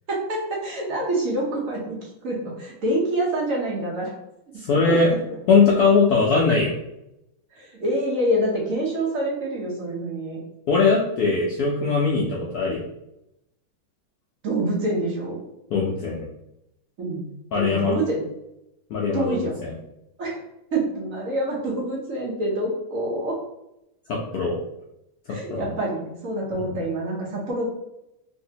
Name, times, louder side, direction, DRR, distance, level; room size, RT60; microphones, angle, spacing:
voice 1, 0.1-4.1 4.9-5.4 7.5-10.4 14.4-15.4 17.0-18.2 19.1-19.6 20.2-20.4 20.7-23.4 25.3-27.7, right 1 dB, 60° right, -3 dB, 0.9 m, -26 dB
voice 2, 4.6-5.1 5.5-6.8 10.7-12.8 15.7-16.2 17.5-18.0 18.9-19.4 24.1-24.6 25.5-25.7 26.7-26.8, left 4 dB, 85° left, -3 dB, 0.8 m, -20 dB
3.3 x 2.7 x 2.7 m, 0.85 s
omnidirectional pair, 2.2 m